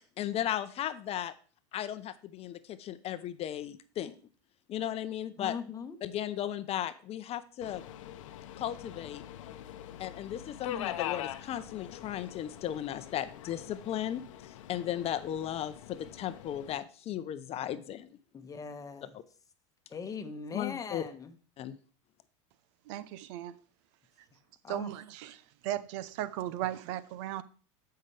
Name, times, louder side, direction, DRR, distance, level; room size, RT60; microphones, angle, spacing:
voice 1, 0.2-1.3 1.7-4.2 4.7-5.5 6.0-7.8 8.6-9.2 10.0-18.1 20.5-21.0 21.6-21.8, left 11 dB, 40° left, 0.7 m, -36 dB
voice 2, 5.4-6.0 18.3-19.1 19.9-21.3 24.6-24.9, left 5 dB, 20° left, 1.2 m, -40 dB
Subway metro underground, 7.6-16.8, left 12 dB, 85° left, 0.7 m, -43 dB
voice 3, 22.9-23.5 24.7-25.3 25.6-27.4, right 13 dB, 65° right, 0.7 m, -36 dB
14.5 x 5.7 x 3.3 m
supercardioid pair, 110°, 16 cm